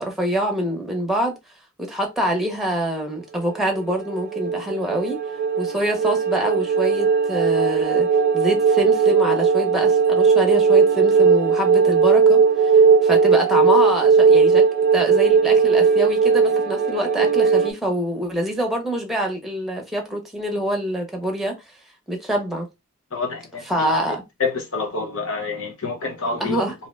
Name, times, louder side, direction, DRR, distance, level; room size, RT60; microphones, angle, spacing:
voice 1, 0.0-1.4 1.8-5.2 5.6-8.1 8.3-14.6 14.9-21.5 22.1-22.7 23.6-24.2 26.4-26.7, equal, ahead, 0.7 m, -25 dB
sound 1, 3.6-17.7, right 5 dB, 45° right, 0.4 m, -17 dB
voice 2, 23.1-23.9 24.4-26.6, left 4 dB, 70° left, 0.9 m, -27 dB
2.7 x 2.1 x 3.2 m
head